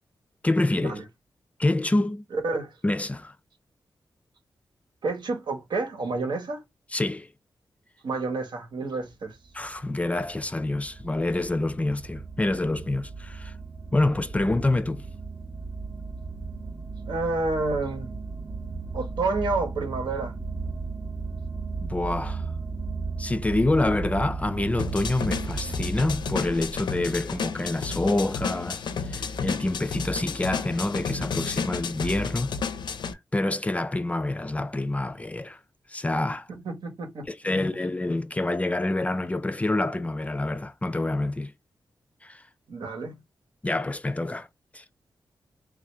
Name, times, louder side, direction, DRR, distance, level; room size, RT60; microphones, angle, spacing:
voice 1, 0.4-1.0 1.6-2.2 2.8-3.3 6.9-7.3 9.5-13.5 13.9-15.0 21.8-22.4 23.2-32.5 33.3-35.6 35.9-36.5 37.3-41.5 42.2-42.4 43.6-44.5 44.7-44.8, left 2 dB, 15° left, 0.3 m, -27 dB
voice 2, 5.0-6.6 8.0-9.4 17.1-18.2 18.9-20.4 36.5-37.2 42.7-43.2, right 3 dB, 75° right, 1.1 m, -29 dB
sound 1, 9.4-26.8, right 4 dB, 30° right, 0.7 m, -35 dB
sound 2, 24.8-33.1, left 5 dB, 80° left, 0.5 m, -32 dB
3.6 x 2.5 x 3.2 m
wide cardioid pair, 115°, 8 cm